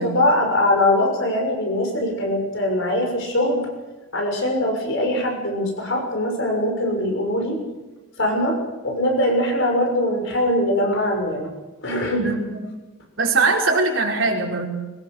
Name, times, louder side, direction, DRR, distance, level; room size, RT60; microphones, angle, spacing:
voice 1, 0.0-3.7 4.1-7.6 8.2-8.6 8.8-11.5 11.8-12.3, left 1 dB, 60° left, 3 dB, 6.7 m, -22 dB
voice 2, 12.2-12.6 13.2-14.7, right 3 dB, 65° right, -1 dB, 5.1 m, -21 dB
23.5 x 19.5 x 6.7 m, 1.2 s
head